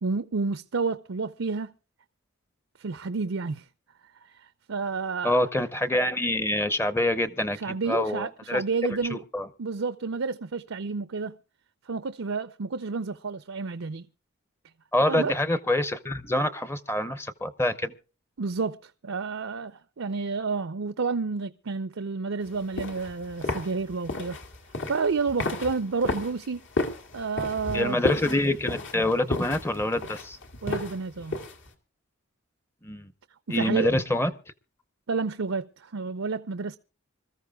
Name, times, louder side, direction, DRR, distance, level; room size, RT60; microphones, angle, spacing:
voice 1, 0.0-1.7 2.8-3.6 4.7-5.4 7.6-9.2 9.6-11.4 11.9-14.1 15.1-15.3 18.4-24.4 24.9-26.6 27.1-28.0 30.6-31.3 33.5-33.9 35.1-36.8, right 4 dB, 70° right, 0.6 m, -30 dB
voice 2, 5.2-8.6 8.9-9.5 14.9-17.9 27.7-30.4 32.8-33.1 33.5-34.3, left 1 dB, 10° left, 0.7 m, -26 dB
sound 1, 22.5-31.7, left 2 dB, 65° left, 2.2 m, -33 dB
25.5 x 14.0 x 2.3 m
head